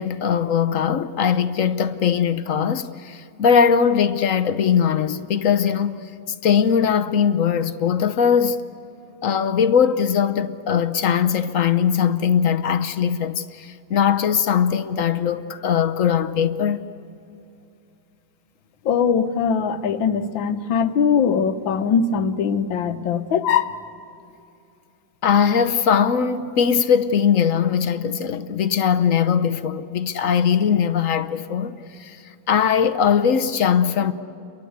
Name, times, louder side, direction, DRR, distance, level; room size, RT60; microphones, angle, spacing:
voice 1, 0.0-6.1 6.4-8.6 9.2-16.8 25.2-34.1, left 7 dB, 55° left, 0.9 m, -20 dB
voice 2, 18.8-23.8, left 6 dB, 75° left, 1.7 m, -21 dB
30.0 x 23.0 x 8.1 m
omnidirectional pair, 2.1 m